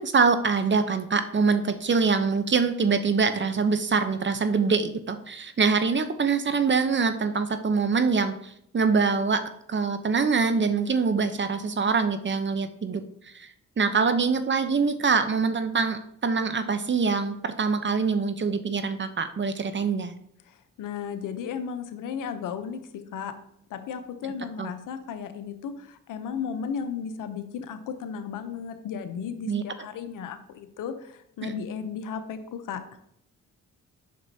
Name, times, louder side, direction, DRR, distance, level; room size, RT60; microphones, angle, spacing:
voice 1, 0.0-9.4 9.7-20.1 24.6-24.7 29.5-29.6 31.4-31.6, right 5 dB, 35° right, 10 dB, 0.8 m, -24 dB
voice 2, 20.5-23.3 23.7-32.8, left 7 dB, 85° left, 9 dB, 0.8 m, -35 dB
7.6 x 6.1 x 2.8 m, 0.71 s
cardioid pair, 60°, 31 cm